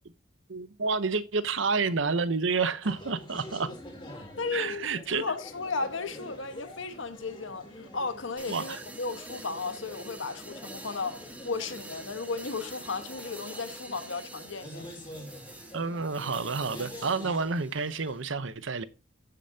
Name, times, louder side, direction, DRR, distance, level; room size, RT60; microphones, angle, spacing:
voice 1, 0.5-3.7 4.5-5.3 8.5-8.8 15.7-18.8, right 4 dB, 75° right, 0.8 m, -29 dB
sound 1, 2.8-17.4, left 1 dB, 25° left, 2.4 m, -47 dB
voice 2, 4.4-14.8, left 4 dB, 80° left, 1.3 m, -35 dB
sound 2, 8.4-18.2, right 2 dB, 5° right, 1.3 m, -47 dB
14.5 x 6.7 x 2.7 m
head